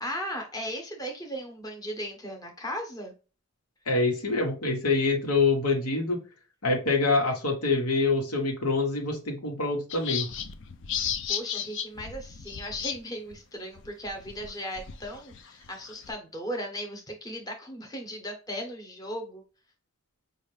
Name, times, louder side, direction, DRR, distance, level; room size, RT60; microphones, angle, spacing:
voice 1, 0.0-3.1 11.0-19.4, equal, 15° left, 2 dB, 1.0 m, -37 dB
voice 2, 3.9-6.2 6.6-10.3, left 3 dB, 85° left, 1 dB, 1.2 m, -25 dB
sound 1, 9.9-13.0 13.3-13.4 13.8-16.1, left 8 dB, 55° left, 0.5 m, -34 dB
5.5 x 2.5 x 3.2 m, 0.33 s
head